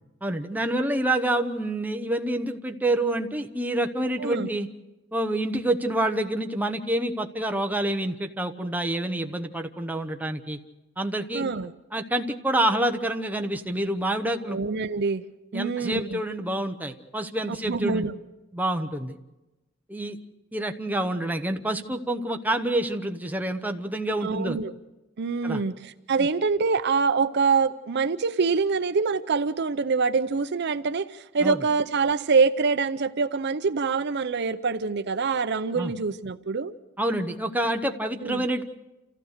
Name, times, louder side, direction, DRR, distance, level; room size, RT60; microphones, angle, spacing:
voice 1, 0.2-4.7 5.1-10.6 11.0-11.4 11.9-14.6 15.5-18.1 18.5-19.2 19.9-20.2 20.5-24.6 25.4-25.6 26.2-26.3 31.4-31.6 35.7-35.9 37.0-38.6, right 1 dB, 10° right, 5 dB, 1.0 m, -27 dB
voice 2, 4.2-4.5 11.3-11.7 14.5-15.2 15.5-16.2 17.5-18.1 24.2-24.7 25.2-36.7 38.2-38.4, right 4 dB, 55° right, 11 dB, 0.6 m, -25 dB
28.5 x 15.0 x 6.6 m, 1.0 s
head